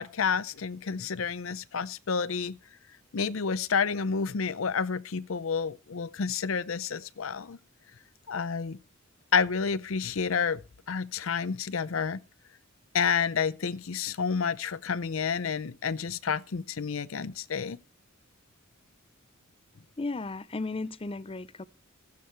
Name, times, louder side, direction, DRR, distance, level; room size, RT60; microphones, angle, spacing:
voice 1, 0.0-2.6 3.1-7.6 8.3-8.8 9.3-10.6 10.9-12.2 12.9-17.8, left 6 dB, 75° left, 0.6 m, -29 dB
voice 2, 20.0-21.6, left 3 dB, 25° left, 0.6 m, -35 dB
14.5 x 9.5 x 4.6 m
head